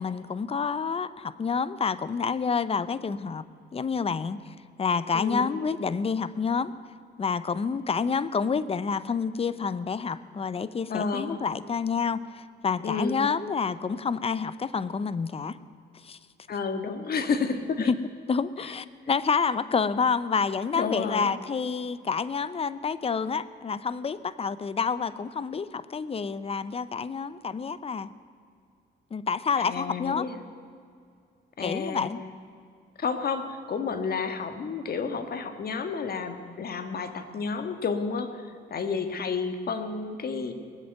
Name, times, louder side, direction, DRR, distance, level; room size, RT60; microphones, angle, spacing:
voice 1, 0.0-3.4 3.7-6.7 7.2-15.6 16.0-16.2 17.9-18.0 18.3-28.1 29.1-30.3 31.6-32.2, left 5 dB, 30° left, 16 dB, 0.7 m, -28 dB
voice 2, 5.1-5.5 10.9-11.4 12.8-13.2 16.5-17.9 20.7-21.3 29.6-30.4 31.6-32.1 33.0-40.5, left 5 dB, 50° left, 7 dB, 1.6 m, -31 dB
19.5 x 7.9 x 9.4 m, 2.3 s
cardioid pair, 90°, 20 cm